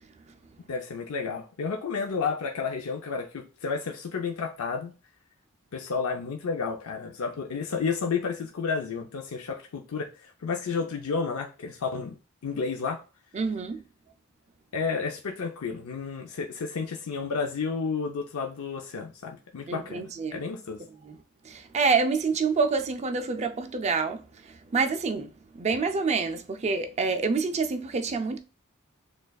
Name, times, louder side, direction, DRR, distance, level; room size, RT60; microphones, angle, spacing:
voice 1, 0.7-4.9 5.7-12.1 12.4-13.0 14.7-20.0 20.3-20.8, left 5 dB, 75° left, 0.5 m, -31 dB
voice 2, 13.3-13.8 19.7-20.4 21.0-21.2 21.4-28.4, right 4 dB, 30° right, 0.4 m, -27 dB
6.4 x 2.4 x 2.3 m
head